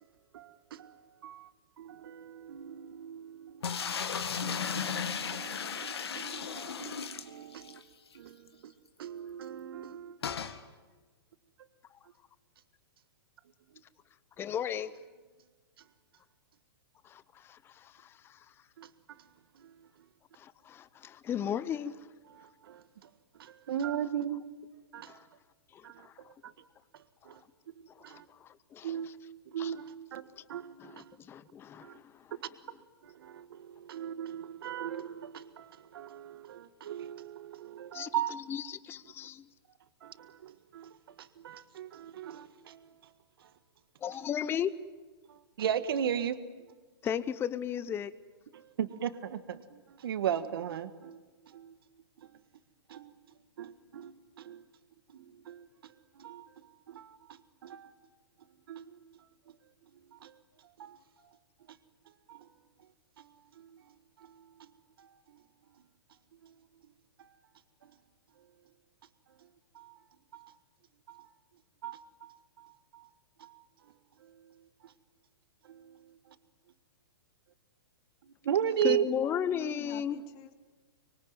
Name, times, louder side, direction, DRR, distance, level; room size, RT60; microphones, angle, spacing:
voice 1, 0.3-0.9 1.2-1.5 1.8-4.0 4.3-7.8 8.1-8.7 9.0-10.2 18.8-18.9 22.4-23.1 23.4-24.4 24.9-25.2 25.8-26.1 26.4-26.5 27.2-27.4 28.0-28.2 28.8-29.1 29.5-31.1 31.8-32.0 32.3-32.5 33.0-38.3 40.0-42.8 45.3-46.4 48.5-51.2 51.5-51.7 52.9-53.1 53.6-54.6 55.1-56.4 56.9-57.9 58.7-59.0 60.1-60.3 60.8-61.0 62.3-62.4 63.6-63.7 65.0-65.1 69.7-69.9 70.3-70.5 71.1-71.2 71.8-73.1 73.4-73.6 75.7-76.0 78.4-79.1, right 9 dB, 65° right, 1.7 m, -37 dB
sound 1, 3.6-7.8 8.1-8.2 8.5-8.6 10.2-10.6, left 7 dB, 85° left, 2.0 m, -35 dB
voice 2, 14.4-14.9 17.0-18.4 20.3-22.0 25.1-25.2 25.7-26.1 28.1-29.1 29.6-29.7 30.4-30.5 30.8-32.0 37.9-39.4 44.0-44.7 47.0-48.1 78.8-80.2, left 9 dB, 20° left, 0.8 m, -35 dB
voice 3, 78.9-80.5, left 12 dB, 40° left, 2.4 m, -45 dB
25.5 x 23.5 x 9.4 m
hypercardioid pair, 135°, 13 cm